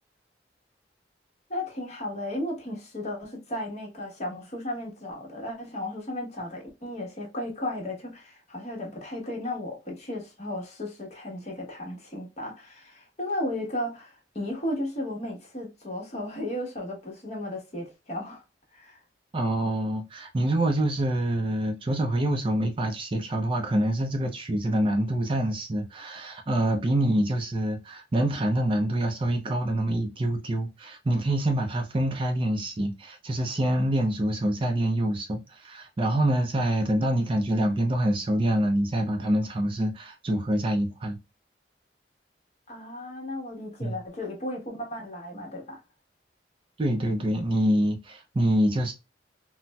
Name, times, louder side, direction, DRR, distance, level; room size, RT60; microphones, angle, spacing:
voice 1, 1.5-18.4 18.7-19.0 42.7-45.8, left 1 dB, 40° left, 1.1 m, -35 dB
voice 2, 19.3-41.2 43.8-44.0 46.8-48.9, right 1 dB, 30° right, 0.4 m, -26 dB
4.0 x 2.0 x 2.2 m
head